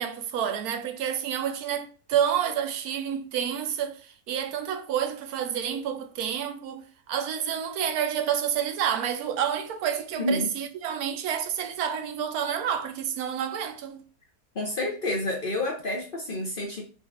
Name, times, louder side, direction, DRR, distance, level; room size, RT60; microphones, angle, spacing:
voice 1, 0.0-14.0, right 9 dB, 70° right, 1.1 m, -29 dB
voice 2, 10.2-10.5 14.5-16.8, left 2 dB, 50° left, 0.6 m, -29 dB
5.4 x 2.5 x 3.5 m
omnidirectional pair, 1.8 m